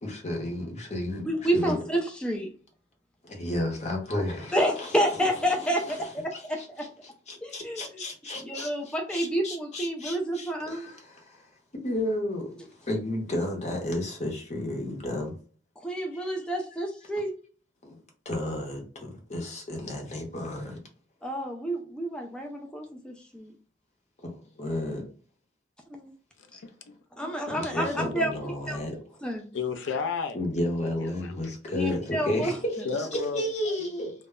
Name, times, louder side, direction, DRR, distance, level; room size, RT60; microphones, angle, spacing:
voice 1, 0.0-1.8 3.2-11.5 11.8-15.4 16.1-16.3 17.8-18.0 18.2-20.8 24.2-25.0 27.5-29.2 30.3-34.1, left 1 dB, 40° left, 0.8 m, -33 dB
voice 2, 1.3-2.5 4.5-6.9 7.4-8.0 8.4-10.9 15.8-17.3 21.2-23.5 25.9-26.1 26.5-26.6 27.2-28.3 28.7-28.8 29.2-29.4 31.7-32.6, equal, 5° left, 0.3 m, -29 dB
voice 3, 26.6-27.0 29.5-30.4 31.2-31.3 32.9-33.9, left 5 dB, 90° left, 0.4 m, -32 dB
2.1 x 2.0 x 3.5 m
head